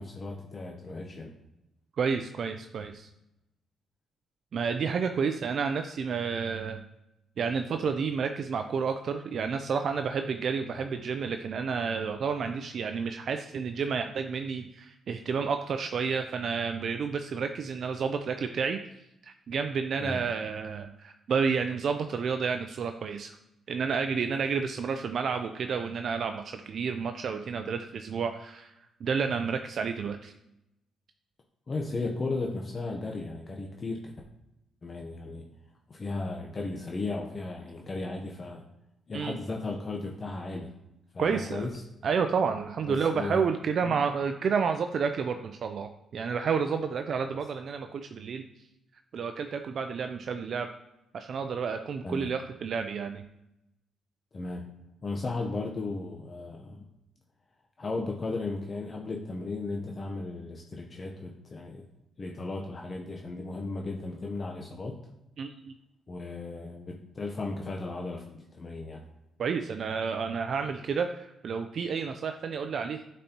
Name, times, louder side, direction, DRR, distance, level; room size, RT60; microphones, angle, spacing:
voice 1, 0.0-1.3 10.7-10.8 20.0-20.2 31.7-34.0 34.8-35.5 35.9-38.6 39.1-40.7 41.1-41.8 42.9-43.4 43.8-43.9 52.0-52.3 54.3-54.7 55.0-56.8 57.8-61.8 62.2-65.0 66.1-69.0, left 3 dB, 35° left, 1 dB, 0.7 m, -35 dB
voice 2, 1.9-3.1 4.5-6.8 7.4-18.8 19.2-23.4 23.7-28.8 29.0-30.3 39.1-39.4 41.2-41.7 42.0-48.4 49.1-50.7 51.1-53.3 65.4-65.7 69.4-73.1, right 6 dB, 55° right, 7 dB, 0.4 m, -30 dB
8.5 x 4.2 x 2.8 m, 0.88 s
cardioid pair, 90°, 0 cm